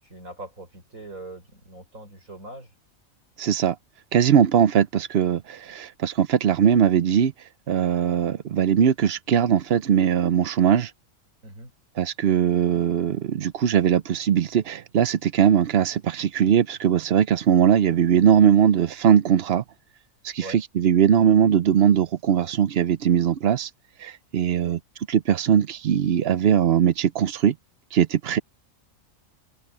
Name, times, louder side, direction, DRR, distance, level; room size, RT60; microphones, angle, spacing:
voice 1, 0.0-2.7 11.4-11.7 20.4-20.6 24.6-24.8, right 2 dB, 85° right, 6.8 m, -41 dB
voice 2, 3.4-3.8 4.1-7.3 7.7-10.9 12.0-19.6 20.2-23.7 24.0-24.8 25.1-27.5 27.9-28.4, right 8 dB, 55° right, 0.9 m, -20 dB
omnidirectional pair, 1.4 m